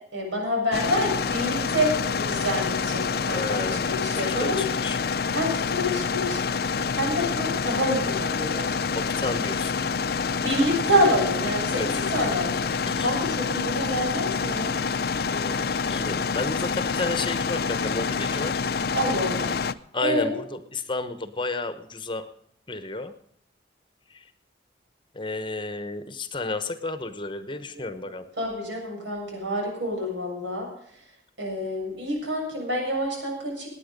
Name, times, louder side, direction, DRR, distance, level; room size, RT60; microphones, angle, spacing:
voice 1, 0.1-4.6 5.3-8.8 10.4-14.8 18.9-19.6 20.0-20.4 27.7-27.8 28.4-31.0 31.4-33.7, equal, 85° right, 0 dB, 7.1 m, -27 dB
sound 1, 0.7-19.7, left 5 dB, 55° left, 0.6 m, -27 dB
voice 2, 3.3-3.9 4.2-5.1 8.9-9.8 11.7-12.1 12.8-13.1 15.3-18.6 19.9-22.3 22.7-23.1 24.1-24.3 25.1-28.3, left 3 dB, 25° left, 11 dB, 1.0 m, -32 dB
18.5 x 9.6 x 5.3 m, 0.67 s
head